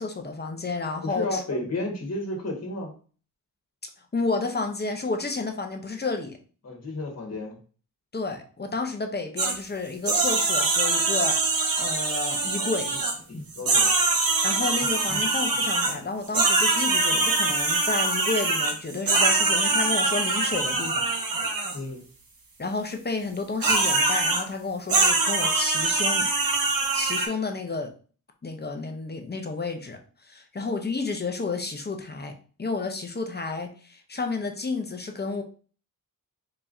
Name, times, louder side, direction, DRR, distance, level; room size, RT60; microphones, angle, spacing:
voice 1, 0.0-1.4 4.1-6.4 8.1-11.4 11.8-12.9 14.4-21.1 22.6-26.3 26.9-27.9 28.4-35.4, left 3 dB, 25° left, 4 dB, 0.7 m, -31 dB
voice 2, 1.0-2.9 6.6-7.6 13.3-13.9 15.1-15.2 21.7-22.0, left 2 dB, 40° left, 1 dB, 1.7 m, -32 dB
sound 1, 9.4-9.5 10.1-13.1 13.5-15.9 16.3-21.8 23.6-24.4 24.9-27.3, right 3 dB, 65° right, 1.1 m, -23 dB
4.5 x 4.3 x 2.6 m, 0.39 s
wide cardioid pair, 120°, 38 cm